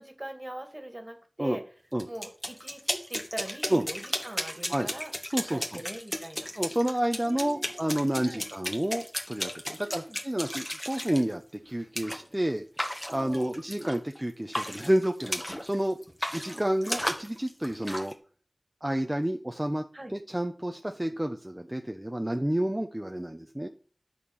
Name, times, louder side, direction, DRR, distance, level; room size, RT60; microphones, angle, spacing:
voice 1, 0.0-1.6 2.1-5.1 5.5-6.5 7.2-7.8 8.2-8.4 9.7-10.2 13.1-13.5 16.4-17.1 17.6-17.9 19.9-20.1, right 1 dB, 40° right, 5 dB, 2.0 m, -42 dB
sound 1, 2.0-11.2 12.0-12.2 12.8-14.2 14.5-15.8 16.0-18.1, equal, 15° left, 1.9 m, -34 dB
voice 2, 5.3-5.7 6.6-12.6 13.1-16.0 16.3-18.1 18.8-19.8 20.1-23.7, right 1 dB, 20° right, 4 dB, 0.8 m, -29 dB
11.5 x 4.4 x 7.2 m, 0.41 s
wide cardioid pair, 45°, 0 cm